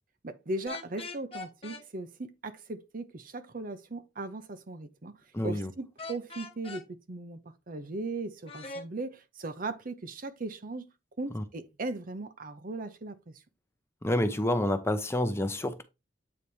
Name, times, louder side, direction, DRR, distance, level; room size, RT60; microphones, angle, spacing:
voice 1, 0.2-5.1 5.4-7.4 7.7-10.9 11.2-13.3, right 2 dB, 50° right, 0.8 m, -38 dB
sound 1, 0.7-1.8 6.0-6.8 8.5-8.9, left 3 dB, 30° left, 1.1 m, -41 dB
voice 2, 5.3-5.7 11.3-11.4 14.0-15.8, left 1 dB, 15° left, 0.7 m, -28 dB
8.6 x 4.1 x 3.3 m
head